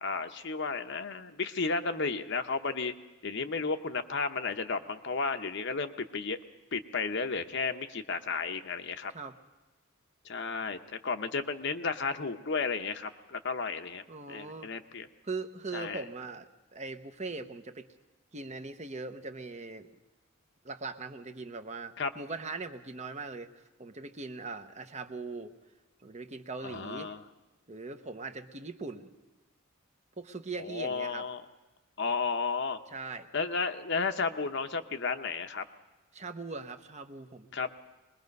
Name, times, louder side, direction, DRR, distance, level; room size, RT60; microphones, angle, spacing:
voice 1, 0.0-2.9 3.2-6.4 6.7-9.1 10.2-15.1 15.7-16.0 22.0-22.1 26.6-27.2 30.6-31.4 32.0-32.8 33.3-35.6 37.5-37.7, left 4 dB, 55° left, 8 dB, 0.9 m, -33 dB
voice 2, 14.1-14.7 15.2-17.9 18.3-19.9 20.6-25.5 26.0-27.1 27.7-29.1 30.2-31.3 32.9-33.3 36.1-37.5, right 3 dB, 35° right, 8 dB, 0.9 m, -40 dB
23.5 x 21.0 x 5.4 m, 1.2 s
head